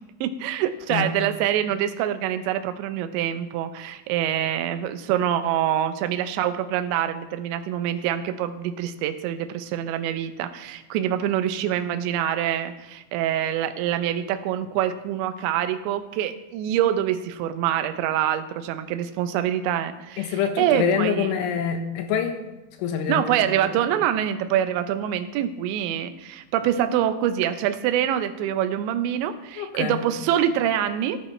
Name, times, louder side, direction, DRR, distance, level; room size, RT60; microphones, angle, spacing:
voice 1, 0.2-21.3 23.1-31.2, right 10 dB, 80° right, 9 dB, 2.7 m, -25 dB
voice 2, 20.2-22.4 22.8-23.8 29.6-30.0, left 7 dB, 75° left, 5 dB, 3.3 m, -26 dB
18.0 x 11.0 x 3.2 m, 1.0 s
omnidirectional pair, 5.9 m